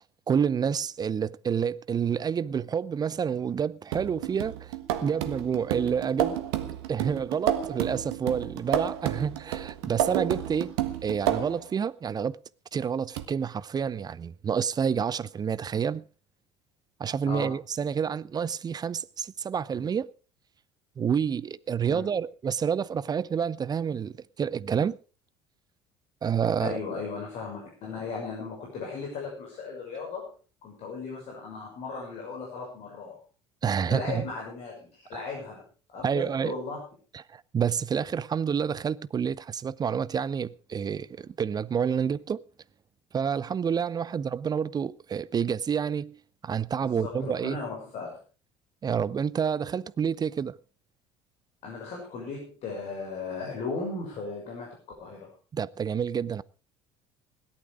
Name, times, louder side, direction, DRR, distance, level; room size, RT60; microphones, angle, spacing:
voice 1, 0.3-4.7 5.0-6.4 6.9-10.7 11.0-12.4 12.7-16.0 17.0-20.1 21.0-25.0 26.2-26.8 33.6-34.3 35.1-35.2 36.0-36.5 37.1-42.4 43.1-47.6 48.8-50.6 55.5-56.4, right 7 dB, 25° right, 0.6 m, -28 dB
sound 1, 3.9-11.7 13.2-13.3, right 11 dB, 65° right, 1.4 m, -31 dB
voice 2, 26.6-30.2 30.6-33.2 33.6-35.6 35.9-36.8 46.8-48.2 51.6-54.7 55.0-55.3, left 4 dB, 50° left, 6.2 m, -36 dB
17.5 x 12.0 x 4.9 m
figure-of-eight pair, 60°, 15 cm